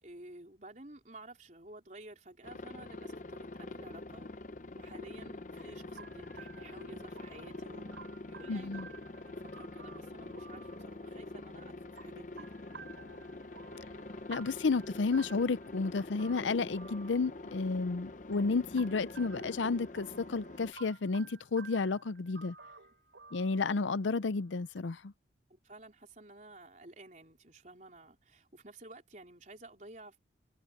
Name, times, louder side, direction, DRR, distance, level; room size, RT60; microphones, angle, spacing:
voice 1, 0.0-4.3 4.7-8.8 9.2-12.5 25.5-30.2, right 2 dB, 40° right, 4.0 m, -52 dB
Aircraft, 2.4-20.7, left 2 dB, 45° left, 0.7 m, -45 dB
sound 1, 5.6-24.8, right 5 dB, 80° right, 3.6 m, -55 dB
voice 2, 8.5-8.9 14.3-22.5 23.3-25.0, left 4 dB, 85° left, 0.6 m, -32 dB
head